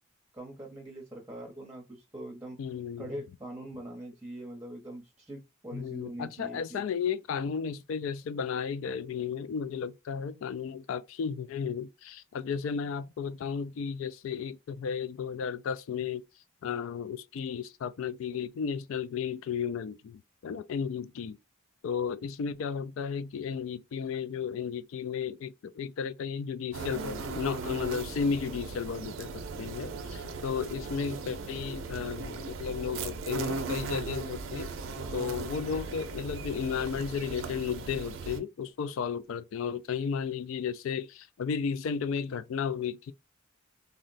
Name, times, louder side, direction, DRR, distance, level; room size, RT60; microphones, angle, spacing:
voice 1, 0.3-2.6 3.0-6.8, right 1 dB, 10° right, 0.7 m, -42 dB
voice 2, 2.6-3.2 5.7-16.2 16.6-21.4 21.8-34.7 35.1-43.1, left 6 dB, 65° left, 0.3 m, -34 dB
sound 1, 26.7-38.4, right 4 dB, 65° right, 0.5 m, -38 dB
3.8 x 2.1 x 2.5 m
head